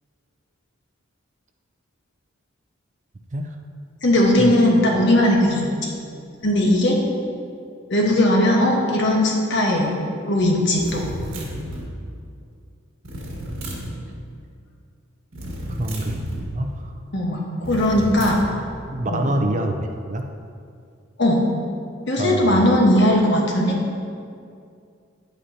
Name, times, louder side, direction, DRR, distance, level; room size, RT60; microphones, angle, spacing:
voice 1, 4.0-5.9 6.4-7.0 7.9-9.9 10.3-11.0 17.1-18.4 19.1-19.2 21.2-21.4 22.1-23.7, left 1 dB, 60° left, -1 dB, 1.3 m, -18 dB
sound 1, 10.8-11.9 13.0-14.0 15.3-16.5 17.6-18.5, equal, 80° right, 1.6 m, -32 dB
voice 2, 15.8-16.9 18.9-20.3 22.2-22.6, right 1 dB, 35° right, 4 dB, 0.5 m, -26 dB
9.6 x 8.3 x 2.8 m, 2.3 s
head